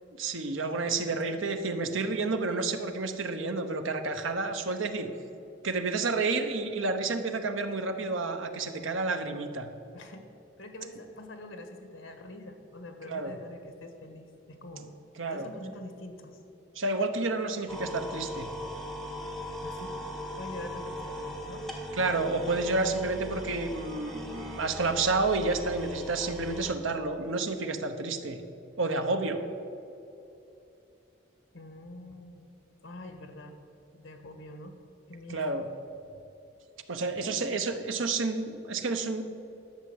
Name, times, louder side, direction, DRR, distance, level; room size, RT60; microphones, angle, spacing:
voice 1, 0.2-5.1 5.6-9.7 13.1-13.3 15.2-15.5 16.7-18.5 22.0-28.4 28.8-29.4 35.3-35.6 36.9-39.2, right 3 dB, 85° right, 7 dB, 1.0 m, -30 dB
voice 2, 1.0-1.5 9.9-10.3 10.6-14.9 15.3-16.4 19.6-20.0 20.3-21.7 31.5-32.5 32.8-33.5 33.9-34.7 35.1-35.5 36.0-36.2 37.2-37.4, left 1 dB, 85° left, 6 dB, 1.4 m, -45 dB
sound 1, 17.7-26.7, equal, ahead, 1.2 m, -39 dB
11.5 x 6.8 x 7.9 m, 2.8 s
head